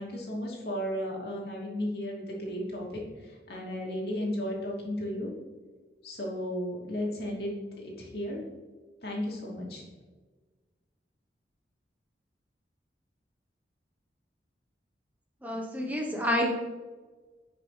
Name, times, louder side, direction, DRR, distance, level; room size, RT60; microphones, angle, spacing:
voice 1, 0.0-5.3 6.0-8.4 9.0-9.8, equal, 60° left, -3 dB, 2.7 m, -34 dB
voice 2, 15.4-16.5, equal, 10° right, 0 dB, 1.1 m, -29 dB
11.0 x 6.0 x 3.3 m, 1.3 s
head